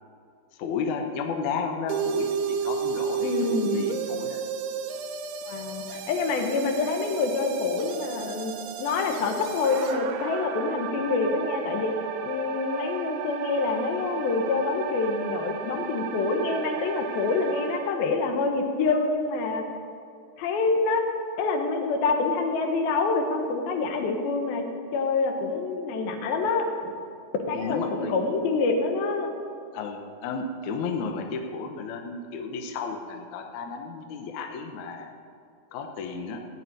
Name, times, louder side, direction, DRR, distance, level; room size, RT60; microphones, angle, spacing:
voice 1, 0.6-4.4 27.5-28.2 29.7-35.1 35.7-36.4, left 5 dB, 70° left, 3 dB, 2.1 m, -33 dB
sound 1, 1.9-17.9, right 7 dB, 90° right, 2.7 m, -33 dB
voice 2, 3.2-3.9 5.5-11.9 12.2-19.6 20.4-21.1 21.4-26.7 27.5-29.3, left 3 dB, 90° left, 4 dB, 3.0 m, -26 dB
14.5 x 5.6 x 9.1 m, 2.5 s
omnidirectional pair, 4.1 m